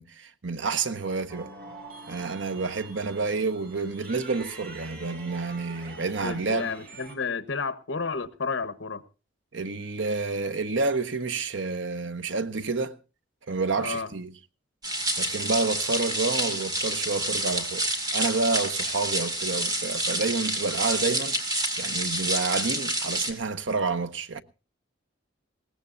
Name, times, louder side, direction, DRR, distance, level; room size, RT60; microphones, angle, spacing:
voice 1, 0.0-1.5 2.1-6.7 9.5-13.0 13.5-14.3 15.2-17.9 18.1-24.4, right 3 dB, 75° right, 0.9 m, -29 dB
sound 1, 1.3-7.2, right 3 dB, 50° right, 3.8 m, -45 dB
voice 2, 6.2-9.0 13.8-14.1, left 4 dB, 80° left, 1.1 m, -31 dB
sound 2, 14.8-23.3, right 1 dB, 20° right, 2.2 m, -28 dB
20.5 x 18.0 x 2.6 m
head